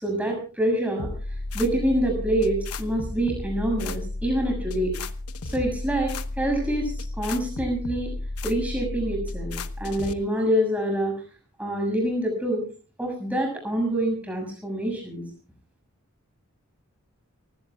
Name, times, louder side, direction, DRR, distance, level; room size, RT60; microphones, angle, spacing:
voice 1, 0.0-1.1 1.5-5.0 5.4-8.1 8.4-11.1 11.6-12.6 13.0-15.2, right 1 dB, 5° right, 2 dB, 6.7 m, -26 dB
sound 1, 1.0-10.1, left 2 dB, 85° left, 1.1 m, -33 dB
29.5 x 16.5 x 2.3 m, 0.35 s
head